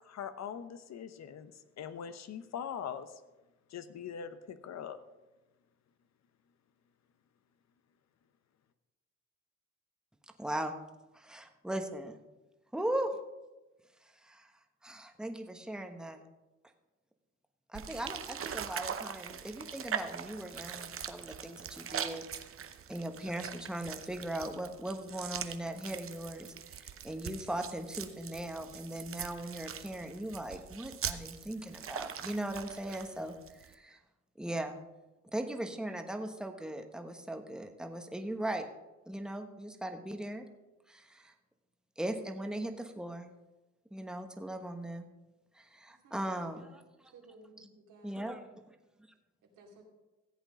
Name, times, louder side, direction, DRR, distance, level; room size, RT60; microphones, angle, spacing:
voice 1, 0.0-3.2 3.7-5.0, left 8 dB, 60° left, 11 dB, 0.9 m, -42 dB
voice 2, 10.4-10.7 11.1-12.2 12.7-13.1 14.2-14.5 14.8-16.2 17.7-22.2 22.9-34.0 34.4-34.8 35.3-38.7 39.1-40.4 40.9-41.3 42.0-43.3 43.9-45.0 45.5-47.1 47.6-47.7 48.0-48.4, right 1 dB, ahead, 5 dB, 1.2 m, -39 dB
sound 1, 17.7-33.7, right 8 dB, 45° right, 0.8 m, -42 dB
voice 3, 46.0-46.9 47.1-48.3 49.6-49.8, right 2 dB, 85° right, 0 dB, 2.7 m, -57 dB
14.5 x 8.1 x 5.1 m, 1.1 s
cardioid pair, 90°, 30 cm